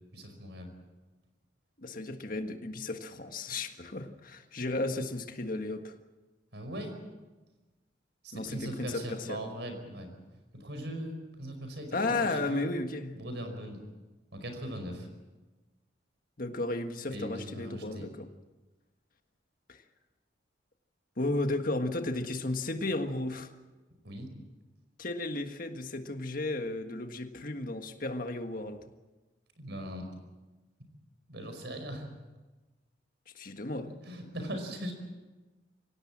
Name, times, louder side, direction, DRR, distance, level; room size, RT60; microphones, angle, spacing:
voice 1, 0.1-0.7 6.5-7.0 8.2-10.1 10.5-12.6 13.2-13.8 14.3-15.1 17.1-18.1 24.0-24.3 29.6-30.1 31.3-32.1 34.0-34.9, equal, 70° right, 6 dB, 5.2 m, -39 dB
voice 2, 1.8-6.0 8.3-9.4 11.9-13.2 16.4-18.3 19.7-19.8 21.2-23.5 25.0-28.9 33.4-33.9, left 2 dB, 50° left, 6 dB, 1.7 m, -34 dB
24.5 x 17.5 x 7.5 m, 1.2 s
head